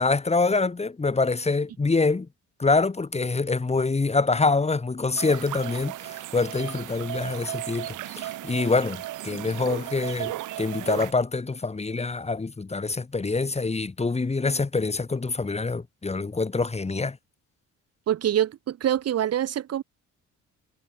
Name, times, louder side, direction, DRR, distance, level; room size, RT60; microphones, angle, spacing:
voice 1, 0.0-2.3 2.6-17.2, left 3 dB, 20° left, 1.7 m, -25 dB
sound 1, 5.2-11.1, right 14 dB, 85° right, 3.9 m, -35 dB
voice 2, 18.1-19.8, right 10 dB, 55° right, 0.9 m, -25 dB
cardioid pair, 90°, 30 cm